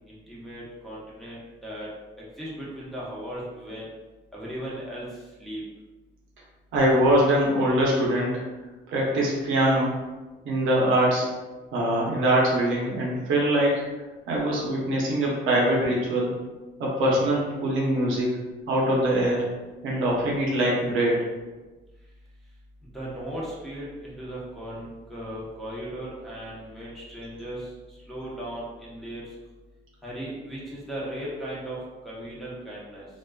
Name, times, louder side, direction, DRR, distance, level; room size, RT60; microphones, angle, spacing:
voice 1, 0.1-1.9 2.4-3.9 4.3-5.1 5.4-5.6 22.9-27.7 28.1-29.2 30.0-33.1, right 1 dB, ahead, -8 dB, 0.8 m, -37 dB
voice 2, 6.7-8.4 8.9-9.9 10.4-11.3 11.7-13.8 14.3-16.3 16.8-18.3 18.7-19.4 19.8-21.3, right 1 dB, 85° right, -4 dB, 0.7 m, -23 dB
2.4 x 2.2 x 2.3 m, 1.2 s
cardioid pair, 90°, 20 cm